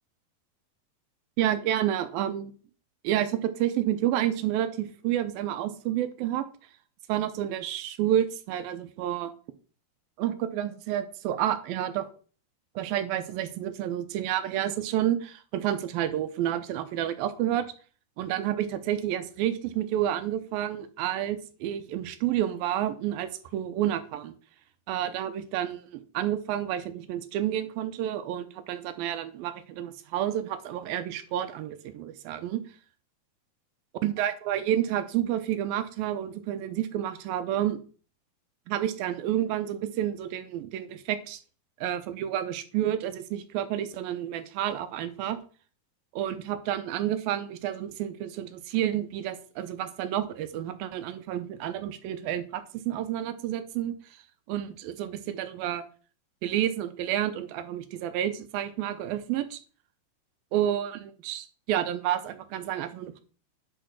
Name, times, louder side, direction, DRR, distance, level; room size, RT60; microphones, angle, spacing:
voice 1, 1.4-2.5 3.0-6.5 7.1-9.3 10.2-12.1 12.8-17.7 18.2-24.3 24.9-32.6 34.0-37.8 38.7-41.4 41.8-45.4 46.1-53.9 54.5-55.8 56.4-59.6 60.5-63.2, right 11 dB, 80° right, 11 dB, 2.4 m, -30 dB
10.0 x 4.6 x 6.2 m, 0.40 s
omnidirectional pair, 4.5 m